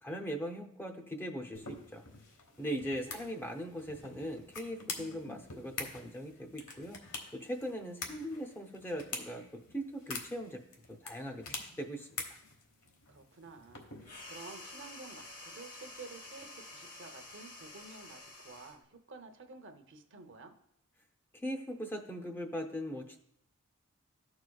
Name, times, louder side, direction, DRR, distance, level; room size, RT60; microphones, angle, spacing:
voice 1, 0.0-2.0 2.6-7.0 7.3-10.6 10.9-12.2 21.3-23.2, equal, 10° left, 3 dB, 0.6 m, -40 dB
sound 1, 1.5-14.4, left 4 dB, 70° left, 1.2 m, -46 dB
voice 2, 2.6-3.3 13.1-20.5, right 3 dB, 60° right, 6 dB, 0.7 m, -52 dB
sound 2, 14.0-18.8, left 2 dB, 40° left, 1.2 m, -49 dB
14.0 x 4.8 x 2.3 m, 0.72 s
head